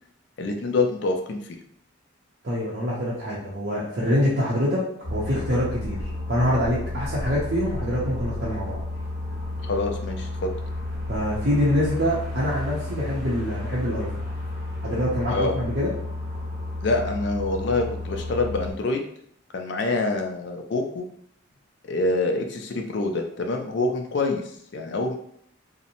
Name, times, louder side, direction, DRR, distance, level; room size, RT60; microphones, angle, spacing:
voice 1, 0.4-1.6 9.6-10.5 15.3-15.6 16.8-19.0 19.5-21.0 21.9-25.1, left 2 dB, 55° left, 4 dB, 0.4 m, -26 dB
voice 2, 2.4-6.0 6.3-8.8 11.1-14.1 14.8-15.9, equal, 55° right, -7 dB, 0.6 m, -25 dB
sound 1, 5.0-18.7, left 2 dB, 15° right, 0.8 m, -32 dB
2.8 x 2.0 x 2.6 m, 0.66 s
head